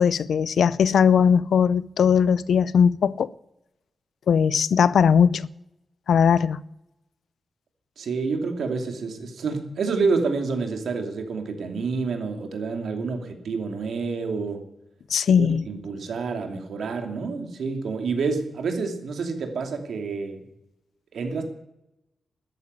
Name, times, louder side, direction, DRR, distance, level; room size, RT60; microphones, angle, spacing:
voice 1, 0.0-3.3 4.3-5.5 6.1-6.6 15.1-15.6, left 7 dB, 80° left, 0.5 m, -19 dB
voice 2, 8.0-14.6 15.3-20.4 21.1-21.4, right 4 dB, 80° right, 2.8 m, -28 dB
13.5 x 10.0 x 9.7 m
wide cardioid pair, 130°, 0 cm